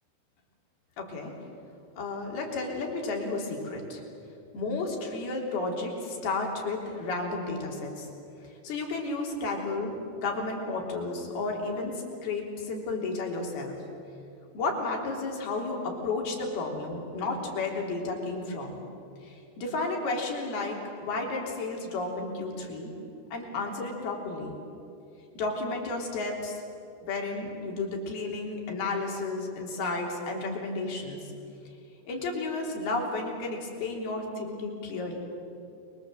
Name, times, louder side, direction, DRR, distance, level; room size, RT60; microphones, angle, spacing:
voice 1, 1.0-1.3 2.0-4.0 4.5-8.1 8.4-13.8 14.5-18.8 19.2-22.9 23.3-24.5 25.4-26.6 27.1-31.3 32.1-35.2, left 3 dB, 85° left, 0 dB, 5.5 m, -32 dB
29.5 x 23.0 x 8.0 m, 2.7 s
omnidirectional pair, 4.3 m